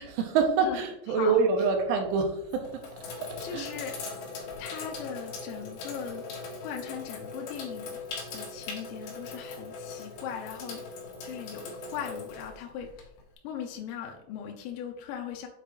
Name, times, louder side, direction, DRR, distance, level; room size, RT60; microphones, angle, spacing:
voice 1, 0.0-2.8 3.2-3.7, right 5 dB, 80° right, 4 dB, 3.1 m, -26 dB
Sink (filling or washing), 1.3-1.8 2.4-13.3, left 3 dB, 65° left, 2.8 m, -40 dB
voice 2, 3.4-4.0 4.6-6.3 6.6-8.0 8.3-10.9 11.2-13.1 13.4-15.5, left 8 dB, 80° left, 2 dB, 2.7 m, -39 dB
7.6 x 5.0 x 3.1 m, 0.78 s
omnidirectional pair, 5.8 m